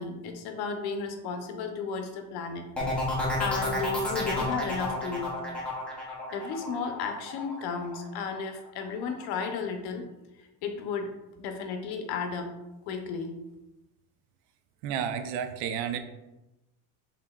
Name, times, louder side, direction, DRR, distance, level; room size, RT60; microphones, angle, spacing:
voice 1, 0.0-2.6 3.1-5.4 6.3-10.0 10.6-11.1 11.4-12.5 12.9-13.4, left 5 dB, 55° left, 5 dB, 0.7 m, -33 dB
sound 1, 2.8-8.4 8.8-9.2, left 2 dB, 5° left, 0.5 m, -32 dB
voice 2, 14.8-16.0, right 8 dB, 75° right, 8 dB, 0.6 m, -31 dB
5.5 x 3.6 x 2.3 m, 0.98 s
cardioid pair, 175°, 46 cm